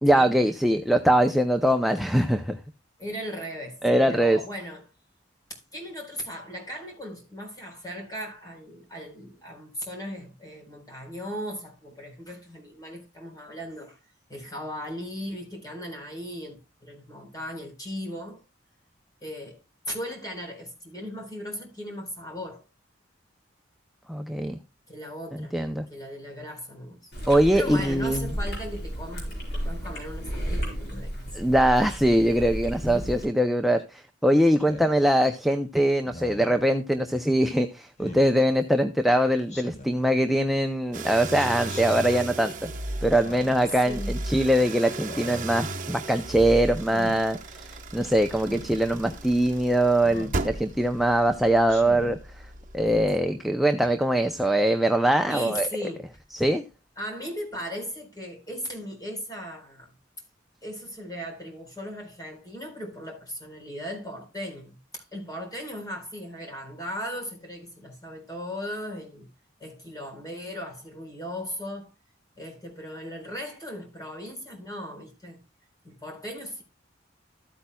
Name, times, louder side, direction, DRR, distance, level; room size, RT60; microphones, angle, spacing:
voice 1, 0.0-2.6 3.8-4.4 24.1-24.6 25.5-25.9 27.3-28.3 31.3-42.7 43.0-52.2 52.7-55.7 56.3-56.6, right 1 dB, ahead, 0.5 m, -22 dB
voice 2, 3.0-4.8 5.5-14.0 14.3-18.4 19.2-19.6 19.9-22.6 24.9-25.6 25.9-27.0 27.2-31.1 32.9-33.2 43.6-44.2 55.3-56.1 57.0-60.0 60.6-69.3 69.6-71.9 72.4-75.4 75.8-76.6, equal, 20° left, 4.2 m, -37 dB
Chewing mastication, 27.1-33.2, equal, 60° left, 4.8 m, -33 dB
Speech synthesizer, 34.6-34.9 36.0-36.6 38.0-38.3 39.5-40.0 41.3-41.8 43.1-43.7 44.9-45.5 46.8-47.2 48.4-48.7 50.0-50.4 51.7-52.2, equal, 40° left, 1.7 m, -40 dB
sound 1, 40.9-53.3, right 2 dB, 45° right, 1.0 m, -36 dB
14.0 x 8.5 x 2.3 m
head